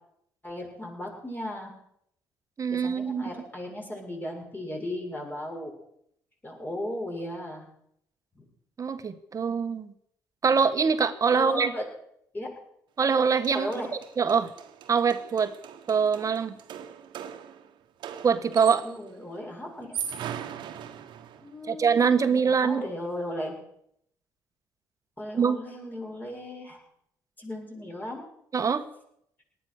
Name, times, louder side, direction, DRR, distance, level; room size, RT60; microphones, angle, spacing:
voice 1, 0.4-1.7 2.7-5.7 6.4-7.7 8.4-8.5 11.3-11.8 12.3-12.5 13.5-13.9 18.8-20.0 21.4-23.5 25.2-26.8 27.4-28.2, equal, 20° left, 0 dB, 7.2 m, -36 dB
voice 2, 2.6-3.2 8.8-9.9 10.4-11.7 13.0-13.7 14.2-14.5 14.9-15.5 15.9-16.5 18.2-18.8 21.7-22.8 25.3-25.6 28.5-28.8, right 6 dB, 40° right, 10 dB, 1.5 m, -23 dB
sound 1, 13.1-13.2 13.4-19.1 19.7-21.6, right 9 dB, 65° right, 1.5 m, -40 dB
18.5 x 11.5 x 6.6 m, 0.73 s
hypercardioid pair, 55°, 9 cm